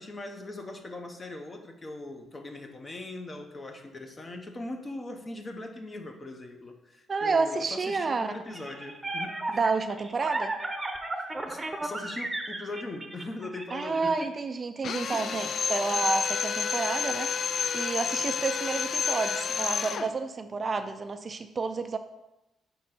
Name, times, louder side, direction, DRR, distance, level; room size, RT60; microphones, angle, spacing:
voice 1, 0.0-9.6 11.2-14.3 15.1-15.4 15.9-16.1 18.2-18.4, left 2 dB, 30° left, 5 dB, 0.9 m, -40 dB
voice 2, 7.1-8.3 9.5-10.5 13.7-22.0, right 4 dB, 35° right, 8 dB, 0.4 m, -30 dB
sound 1, 8.5-14.3, right 2 dB, 20° right, 0.9 m, -35 dB
Drill, 14.8-20.1, left 6 dB, 60° left, 0.3 m, -30 dB
5.4 x 4.1 x 5.9 m, 0.95 s
cardioid pair, 90°, 0 cm